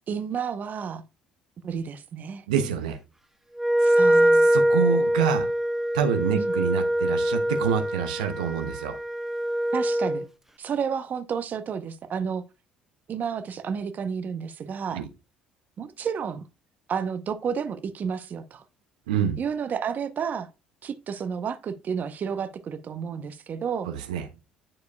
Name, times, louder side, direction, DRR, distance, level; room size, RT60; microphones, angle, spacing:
voice 1, 0.1-1.0 1.6-2.4 3.8-4.5 6.3-6.5 9.7-10.3 10.6-12.4 13.1-15.1 15.8-16.4 16.9-18.6 19.3-20.5 20.8-23.9, right 7 dB, 45° right, 0.8 m, -31 dB
voice 2, 2.5-3.0 3.8-3.9 4.5-5.5 5.9-8.9 14.9-15.0 19.1-19.4 23.9-24.2, right 8 dB, 80° right, 0.8 m, -27 dB
Wind instrument woodwind instrument, 3.6-10.2, right 1 dB, 5° right, 0.8 m, -23 dB
10.5 x 4.6 x 2.3 m
hypercardioid pair, 60°, 4 cm